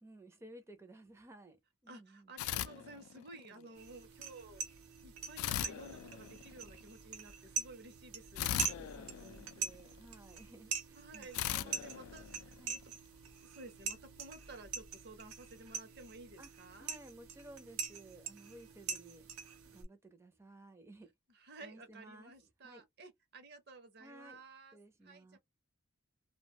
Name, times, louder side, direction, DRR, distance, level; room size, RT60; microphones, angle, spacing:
voice 1, 0.0-1.6 1.8-2.3 3.1-3.7 8.5-11.9 12.6-12.8 16.4-16.5 16.8-21.1 21.6-22.8 24.0-24.4 24.7-25.4, right 2 dB, 10° right, 0.5 m, -56 dB
voice 2, 1.9-4.6 5.0-8.6 11.0-12.8 13.4-16.9 21.3-25.4, right 2 dB, 50° right, 0.7 m, -54 dB
sound 1, 2.4-3.5 5.4-6.8 8.4-10.1 11.3-12.9, left 12 dB, 85° left, 0.3 m, -39 dB
sound 2, 3.8-19.8, right 6 dB, 85° right, 0.7 m, -44 dB
2.3 x 2.2 x 2.8 m
head